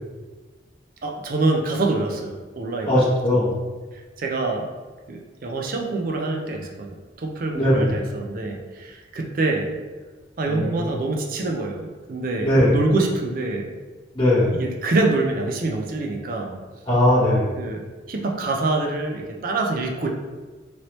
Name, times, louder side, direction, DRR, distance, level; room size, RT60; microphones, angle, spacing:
voice 1, 1.0-2.9 4.2-4.7 5.1-9.7 10.4-13.7 14.6-16.6 17.6-17.8 18.1-20.1, right 2 dB, 50° right, 1 dB, 0.4 m, -25 dB
voice 2, 2.9-3.6 7.5-7.9 10.5-10.9 12.4-12.7 14.1-14.5 16.9-17.5, left 1 dB, 25° left, -11 dB, 0.8 m, -19 dB
3.0 x 2.7 x 3.0 m, 1.3 s
head